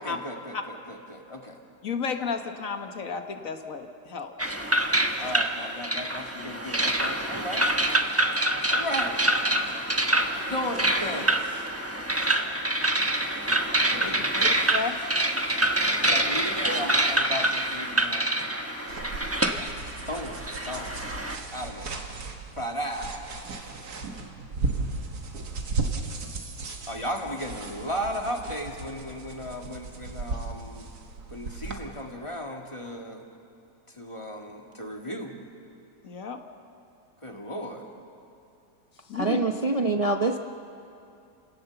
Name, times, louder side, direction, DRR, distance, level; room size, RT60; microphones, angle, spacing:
voice 1, 0.0-1.6 5.2-7.7 8.6-9.2 10.3-11.7 14.0-14.5 16.1-18.3 20.1-20.9 21.5-22.0 22.6-23.3 23.6-23.7 26.9-30.9 31.3-33.2 33.9-35.4 37.2-37.8, equal, 20° left, 2 dB, 1.8 m, -35 dB
voice 2, 1.8-4.3 5.2-5.3 14.0-14.9 36.0-36.4 39.1-39.4, left 5 dB, 60° left, 6 dB, 1.6 m, -33 dB
sound 1, 4.4-21.4, right 1 dB, 10° right, 1.0 m, -26 dB
sound 2, 18.9-31.8, right 3 dB, 80° right, 2.2 m, -35 dB
voice 3, 39.1-40.4, right 3 dB, 35° right, 4 dB, 0.6 m, -25 dB
29.5 x 17.5 x 7.0 m, 2.5 s
omnidirectional pair, 1.7 m